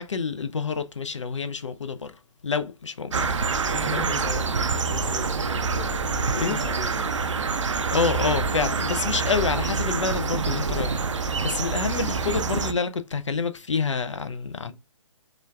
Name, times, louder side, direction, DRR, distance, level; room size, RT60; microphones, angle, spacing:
voice 1, 0.0-4.1 6.3-6.6 7.9-14.7, left 5 dB, 65° left, 0.4 m, -28 dB
sound 1, 3.1-12.7, right 4 dB, 65° right, 0.4 m, -26 dB
voice 2, 3.7-7.2 14.7-14.8, left 2 dB, 40° left, 2.1 m, -38 dB
4.9 x 2.3 x 2.2 m
figure-of-eight pair, 140°, 17 cm